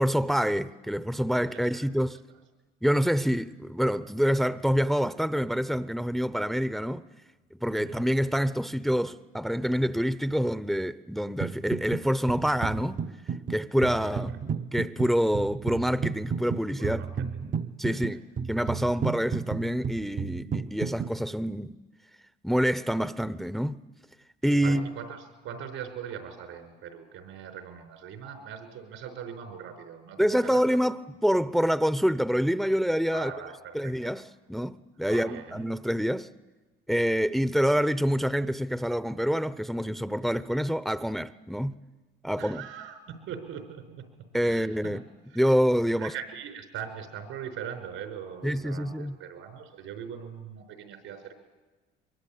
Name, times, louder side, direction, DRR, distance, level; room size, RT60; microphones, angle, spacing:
voice 1, 0.0-2.2 2.8-7.0 7.6-13.0 13.5-14.3 14.7-17.0 17.8-18.2 18.5-21.7 22.4-23.8 24.4-24.9 30.2-31.0 31.2-33.3 33.7-34.2 34.5-36.3 36.9-41.7 42.2-42.6 44.3-45.0 45.3-46.1 48.4-49.2, equal, ahead, 0.8 m, -26 dB
voice 2, 1.5-1.9 7.8-8.0 14.0-14.4 16.8-17.4 17.9-18.2 24.6-30.8 33.1-34.2 35.0-35.7 42.4-45.0 45.3-45.4 45.9-51.4, right 8 dB, 75° right, 5.2 m, -41 dB
sound 1, 11.4-12.0 12.3-21.1, right 6 dB, 40° right, 0.9 m, -33 dB
23.5 x 23.5 x 8.8 m
supercardioid pair, 75°, 21 cm